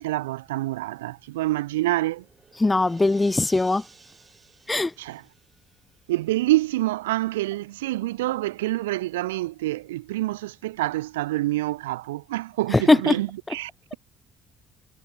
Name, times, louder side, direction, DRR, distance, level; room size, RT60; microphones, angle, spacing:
voice 1, 0.0-2.2 5.0-5.3 6.1-14.0, right 17 dB, 75° right, 0.5 m, -27 dB
sound 1, 1.9-6.3, right 5 dB, 30° right, 6.2 m, -53 dB
voice 2, 2.6-3.8 4.7-4.9 12.7-13.1, left 2 dB, 20° left, 0.4 m, -20 dB
figure-of-eight pair, 50°, 0 cm